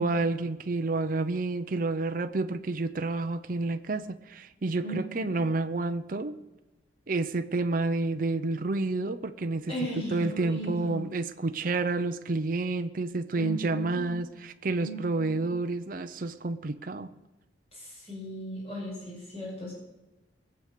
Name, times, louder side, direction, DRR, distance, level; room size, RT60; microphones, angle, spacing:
voice 1, 0.0-6.4 7.1-9.7 10.1-17.1, right 3 dB, 45° right, 9 dB, 0.6 m, -29 dB
voice 2, 4.8-5.4 9.7-11.0 13.3-14.0 14.8-15.4 17.7-19.7, right 1 dB, 30° left, -5 dB, 5.9 m, -37 dB
20.5 x 7.9 x 6.7 m, 1.0 s
head